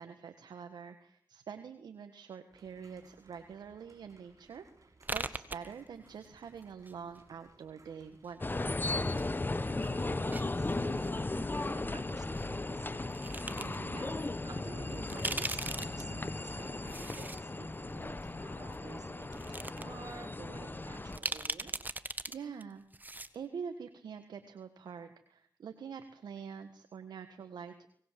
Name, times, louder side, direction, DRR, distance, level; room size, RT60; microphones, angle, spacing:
voice 1, 0.0-9.0 13.6-14.1 22.3-22.8 23.3-27.9, right 6 dB, 80° right, 7 dB, 1.7 m, -46 dB
sound 1, 2.5-10.9, right 3 dB, 50° right, 6.6 m, -64 dB
sound 2, 5.0-6.3 6.5-7.5 8.2-9.3 9.6-11.1 12.4-12.5 13.1-13.8 14.2-14.3 14.9-17.4 17.8-17.9 18.7-18.8 19.2-19.8 20.2-20.3 21.1-22.3 22.6-22.7 22.9-23.4, right 2 dB, 25° right, 1.6 m, -39 dB
sound 3, 8.4-21.2, left 2 dB, 30° left, 1.4 m, -36 dB
voice 2, 9.6-13.2 13.5-21.7, right 4 dB, 65° right, 6 dB, 4.0 m, -51 dB
25.0 x 19.5 x 7.7 m, 0.64 s
cardioid pair, 45°, 7 cm